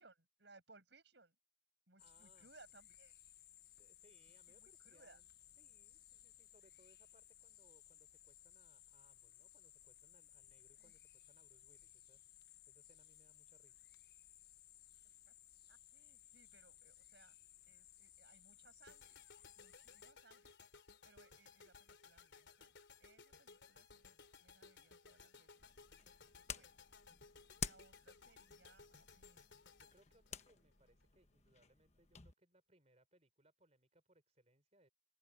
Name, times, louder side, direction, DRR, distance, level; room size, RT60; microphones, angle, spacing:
voice 1, 0.0-1.3 1.9-3.1 4.6-5.2 10.8-10.9 15.3-15.4 15.7-17.3 17.7-19.2 19.6-20.5 21.0-22.7 23.0-25.7 26.5-26.7 27.6-29.5, right 3 dB, 65° right, 6.4 m, -67 dB
sound 1, 2.0-20.1, left 13 dB, 55° left, 1.0 m, -62 dB
voice 2, 2.0-2.5 3.8-5.3 5.6-13.9 29.8-34.9, right 1 dB, 35° right, 4.6 m, -73 dB
sound 2, 18.9-31.0, left 5 dB, 70° left, 3.6 m, -62 dB
sound 3, 25.6-32.3, left 7 dB, 35° left, 1.2 m, -51 dB
open air
head